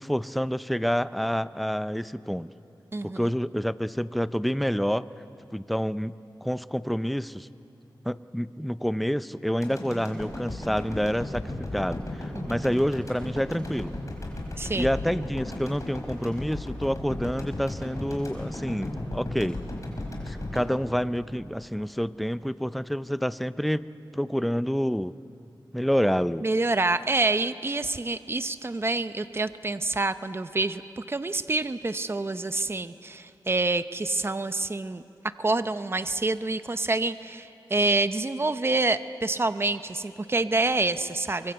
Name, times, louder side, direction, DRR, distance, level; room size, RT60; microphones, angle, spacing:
voice 1, 0.0-2.5 3.0-5.0 5.5-6.1 6.4-7.5 8.0-13.9 14.7-19.6 20.2-25.1 25.7-26.5, equal, ahead, 14 dB, 0.5 m, -28 dB
voice 2, 2.9-3.3 12.3-12.6 14.6-14.9 26.4-35.0 35.4-41.5, right 2 dB, 30° right, 11 dB, 0.8 m, -27 dB
sound 1, 9.6-21.8 22.2-22.3, left 1 dB, 40° left, 5.3 m, -36 dB
23.5 x 23.5 x 8.1 m, 2.8 s
wide cardioid pair, 70°, 8 cm